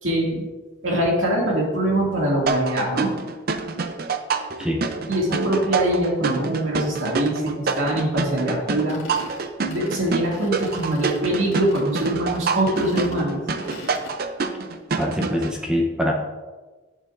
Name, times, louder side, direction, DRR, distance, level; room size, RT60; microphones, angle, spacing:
voice 1, 0.0-0.5 0.8-3.1 5.1-9.0 9.6-13.4, right 1 dB, 85° right, -2 dB, 2.2 m, -23 dB
sound 1, 2.5-15.5, right 4 dB, 50° right, 0.5 m, -27 dB
sound 2, 8.9-14.2, left 2 dB, 85° left, 1.9 m, -41 dB
voice 2, 15.0-16.1, equal, 5° right, -1 dB, 0.7 m, -24 dB
11.0 x 6.6 x 2.5 m, 1.3 s
head